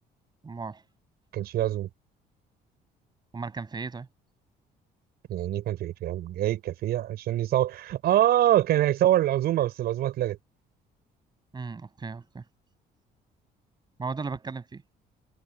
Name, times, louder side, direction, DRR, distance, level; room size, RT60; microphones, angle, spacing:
voice 1, 0.4-0.8 3.3-4.1 11.5-12.4 14.0-14.8, right 4 dB, 25° right, 5.9 m, -36 dB
voice 2, 1.3-1.9 5.3-10.4, right 13 dB, 70° right, 5.7 m, -25 dB
cardioid pair, 110°, 17 cm